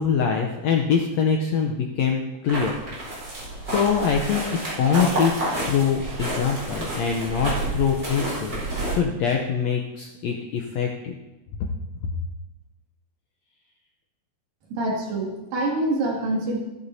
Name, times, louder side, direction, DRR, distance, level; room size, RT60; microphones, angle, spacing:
voice 1, 0.0-2.8 3.7-11.2, left 6 dB, 75° left, 1 dB, 1.6 m, -24 dB
sound 1, 2.5-8.9, right 1 dB, 30° right, 4.9 m, -29 dB
voice 2, 14.7-16.6, right 2 dB, 75° right, -3 dB, 3.9 m, -25 dB
14.5 x 12.0 x 2.8 m, 1.1 s
omnidirectional pair, 4.0 m